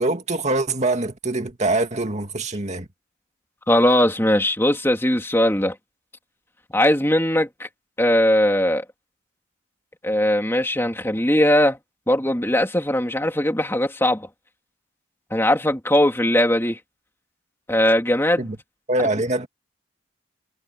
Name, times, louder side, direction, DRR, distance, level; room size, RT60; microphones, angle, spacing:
voice 1, 0.0-2.9 18.4-18.6 18.9-19.5, right 2 dB, 35° right, 2.2 m, -24 dB
voice 2, 3.7-5.7 6.7-7.7 8.0-8.8 10.0-11.8 12.1-14.3 15.3-16.8 17.7-18.5, left 1 dB, 10° left, 2.9 m, -19 dB
head